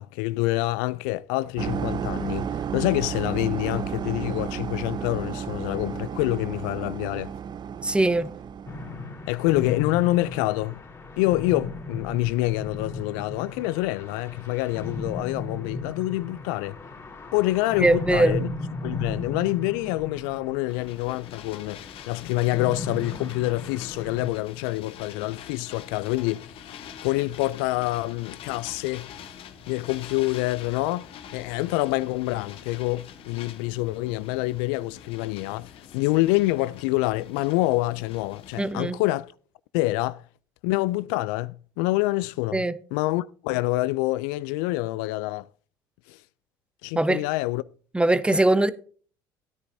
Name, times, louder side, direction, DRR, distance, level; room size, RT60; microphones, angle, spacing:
voice 1, 0.0-7.3 9.3-10.8 11.2-16.8 17.3-18.5 18.8-29.1 29.7-39.3 39.7-40.2 40.6-42.6 42.9-45.5 46.1-46.2 46.8-47.6 48.3-48.4, left 19 dB, 80° left, 0.4 m, -26 dB
sound 1, 1.6-9.2, right 7 dB, 40° right, 0.6 m, -32 dB
voice 2, 7.8-8.3 17.8-18.4 38.6-39.0 42.5-42.7 46.9-47.2 47.9-48.7, right 2 dB, 10° right, 0.8 m, -21 dB
sound 2, 8.7-24.3, left 3 dB, 25° left, 3.4 m, -36 dB
sound 3, 20.7-38.7, left 8 dB, 60° left, 1.2 m, -45 dB
13.5 x 9.6 x 2.7 m
hypercardioid pair, 75°, 11 cm